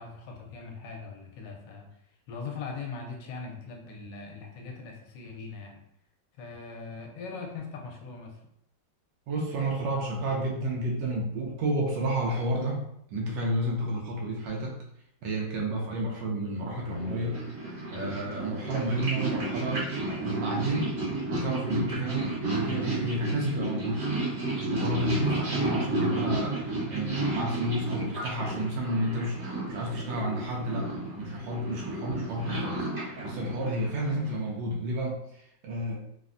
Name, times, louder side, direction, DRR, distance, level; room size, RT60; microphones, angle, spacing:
voice 1, 0.0-1.9 2.3-5.8 6.4-8.4, left 4 dB, 80° left, 1 dB, 1.3 m, -40 dB
voice 2, 9.3-14.8 15.2-17.4 17.9-21.0 21.3-24.1 24.7-36.0, right 1 dB, 80° right, -2 dB, 1.3 m, -31 dB
Purr, 16.9-34.5, right 2 dB, 55° right, 1.3 m, -32 dB
3.4 x 2.1 x 2.5 m, 0.74 s
omnidirectional pair, 2.0 m